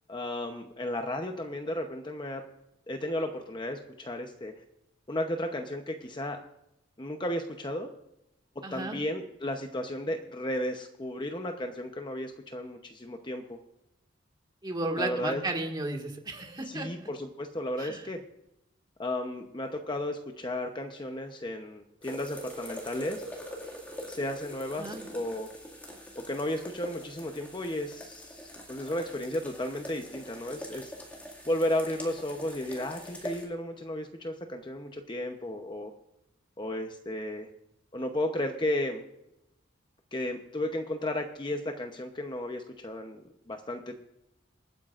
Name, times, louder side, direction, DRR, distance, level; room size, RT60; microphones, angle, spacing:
voice 1, 0.1-2.4 2.9-4.5 5.1-6.4 7.0-7.9 8.7-13.6 15.0-15.4 16.7-18.2 19.0-23.2 24.1-25.5 26.1-30.9 31.4-35.9 36.6-37.5 37.9-39.0 40.1-43.2 43.5-44.0, left 1 dB, 25° left, 4 dB, 0.8 m, -34 dB
voice 2, 8.6-9.0 14.6-17.1 17.8-18.1 24.8-25.1, right 2 dB, 20° right, 2 dB, 1.8 m, -34 dB
sound 1, 22.0-33.4, equal, 10° left, 2.1 m, -44 dB
27.5 x 9.3 x 2.5 m, 0.83 s
head